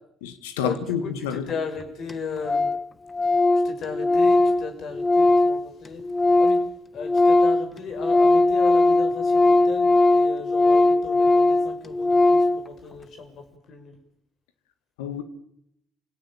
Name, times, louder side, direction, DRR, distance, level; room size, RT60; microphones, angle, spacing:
voice 1, 0.2-1.6 15.0-15.2, left 8 dB, 85° left, 1.8 m, -29 dB
voice 2, 1.5-2.7 3.6-6.0 6.4-6.6 6.9-14.0, left 5 dB, 60° left, 6.2 m, -36 dB
Organ, 1.5-1.6 1.8-1.9 2.1-2.2 2.4-2.8 3.1-6.7 7.0-12.6, left 2 dB, 30° left, 1.6 m, -19 dB
27.5 x 17.5 x 8.8 m
hypercardioid pair, 50°, 0 cm